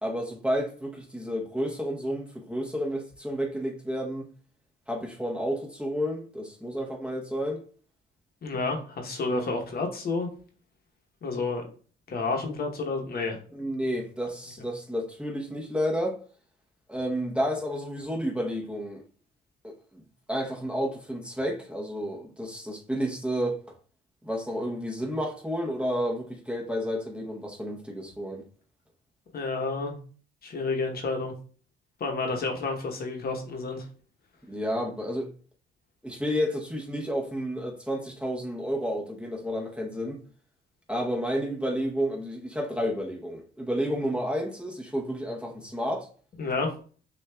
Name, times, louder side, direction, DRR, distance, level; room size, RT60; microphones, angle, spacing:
voice 1, 0.0-4.3 4.9-7.6 13.5-16.2 16.9-19.0 19.6-20.0 20.3-23.6 24.2-28.4 34.5-35.3 36.0-40.2 40.9-46.1, equal, 5° right, 0.8 m, -31 dB
voice 2, 8.4-10.3 11.2-11.6 12.1-13.4 29.3-30.0 30.4-31.3 32.0-33.9 46.4-46.7, left 3 dB, 50° left, 0.9 m, -30 dB
6.3 x 2.4 x 2.2 m
cardioid pair, 90°, 20 cm